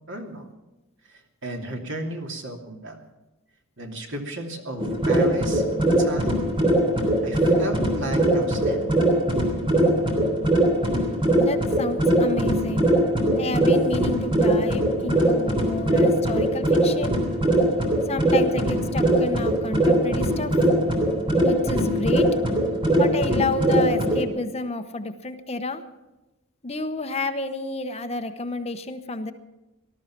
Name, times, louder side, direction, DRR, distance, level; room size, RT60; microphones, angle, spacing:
voice 1, 0.1-0.5 1.1-3.0 3.8-5.6 6.0-6.4 7.2-8.9, right 1 dB, 60° right, 3 dB, 2.8 m, -34 dB
sound 1, 4.8-24.2, right 1 dB, 25° right, 3.3 m, -21 dB
voice 2, 11.2-12.9 13.4-17.1 18.1-20.6 21.4-22.3 23.0-25.8 26.6-29.3, left 2 dB, 30° left, 8 dB, 1.0 m, -30 dB
19.0 x 13.0 x 6.0 m, 1.0 s
head